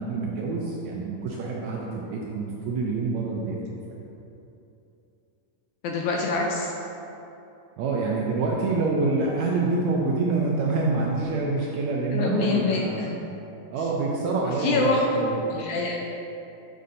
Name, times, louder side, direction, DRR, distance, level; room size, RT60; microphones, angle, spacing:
voice 1, 0.0-3.6 3.9-4.0 7.8-13.1 13.7-15.4, right 3 dB, 80° right, -3 dB, 1.7 m, -26 dB
voice 2, 5.8-6.7 9.7-9.9 12.1-13.1 14.6-15.0 15.5-16.0, left 3 dB, 80° left, -1 dB, 1.8 m, -25 dB
6.9 x 6.4 x 2.6 m, 2.9 s
omnidirectional pair, 3.7 m